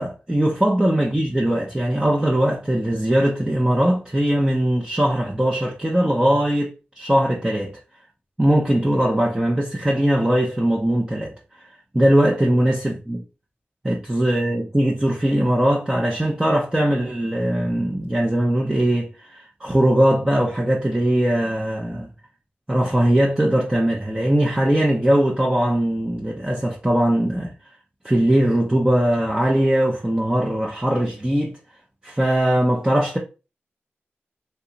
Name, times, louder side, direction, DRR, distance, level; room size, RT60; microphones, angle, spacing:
voice 1, 0.0-7.8 8.4-11.4 11.9-13.2 13.8-22.1 22.7-27.5 28.0-31.6 32.0-33.2, right 1 dB, 15° right, 0.7 m, -20 dB
2.8 x 2.3 x 3.9 m
cardioid pair, 40°, 4 cm